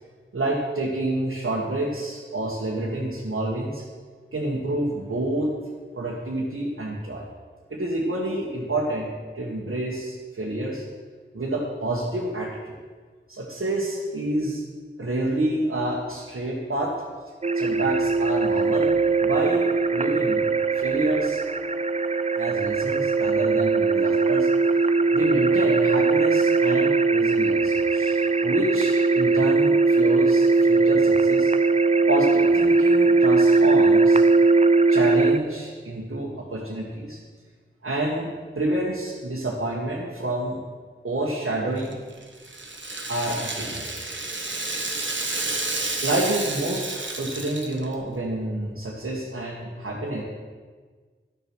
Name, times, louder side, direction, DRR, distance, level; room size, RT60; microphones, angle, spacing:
voice 1, 0.3-3.8 4.3-5.5 5.9-7.2 7.7-10.8 11.3-12.8 13.3-14.6 15.0-17.0 17.5-19.0 19.2-21.4 22.4-24.5 25.1-31.5 32.1-34.3 34.9-37.2 37.8-38.3 38.5-40.6 41.0-42.0 43.1-44.1 46.0-50.2, right 1 dB, 80° right, -4 dB, 1.5 m, -28 dB
sound 1, 17.4-35.4, right 3 dB, 30° right, 0.4 m, -20 dB
Rattle (instrument), 41.8-48.0, right 2 dB, 60° right, 1.4 m, -31 dB
12.0 x 7.3 x 6.2 m, 1.5 s
wide cardioid pair, 50°, 21 cm